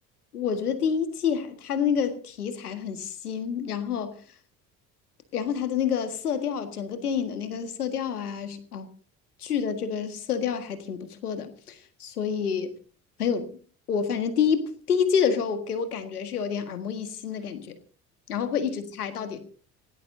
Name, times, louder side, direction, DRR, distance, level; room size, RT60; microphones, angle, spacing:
voice 1, 0.3-4.2 5.3-8.9 9.4-12.8 13.2-13.5 13.9-17.8 18.3-19.4, left 7 dB, 80° left, 1.8 m, -28 dB
26.5 x 17.0 x 2.7 m
figure-of-eight pair, 55°, 44 cm